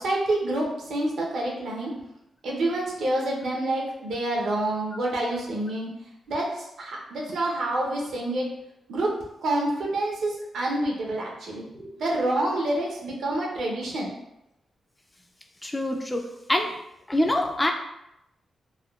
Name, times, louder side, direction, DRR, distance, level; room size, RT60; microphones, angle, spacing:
voice 1, 0.0-1.9 2.4-5.9 6.3-8.5 8.9-9.2 9.4-14.1, right 1 dB, 80° right, -2 dB, 0.7 m, -27 dB
voice 2, 15.6-16.2 16.5-16.7 17.1-17.7, left 1 dB, 15° left, 3 dB, 0.3 m, -24 dB
3.5 x 2.1 x 2.3 m, 0.85 s
cardioid pair, 110°, 0 cm